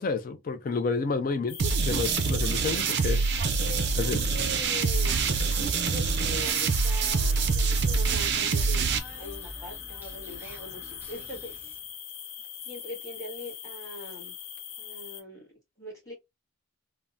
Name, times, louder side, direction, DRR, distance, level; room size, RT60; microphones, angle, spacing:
voice 1, 0.0-3.2 4.0-4.3, left 4 dB, 40° left, 0.3 m, -30 dB
sound 1, 1.5-15.2, left 9 dB, 80° left, 0.7 m, -41 dB
sound 2, 1.6-9.0, right 5 dB, 50° right, 0.4 m, -26 dB
Human voice, 2.4-11.9, right 1 dB, 10° right, 0.8 m, -46 dB
voice 2, 3.6-5.4 5.9-8.9 9.2-10.8 11.1-11.7 12.6-14.4 14.8-16.1, left 1 dB, 15° left, 1.5 m, -42 dB
3.4 x 2.1 x 2.5 m
head